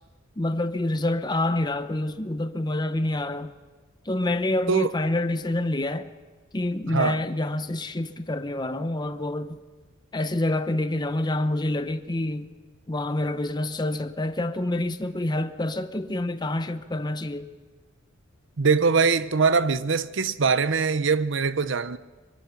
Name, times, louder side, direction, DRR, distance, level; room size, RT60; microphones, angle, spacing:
voice 1, 0.4-3.5 4.1-6.1 6.5-9.6 10.1-12.5 12.9-17.5, left 1 dB, 20° left, 0.9 m, -27 dB
voice 2, 6.9-7.2 18.6-22.0, right 5 dB, 65° right, 0.8 m, -22 dB
24.0 x 22.5 x 5.9 m
head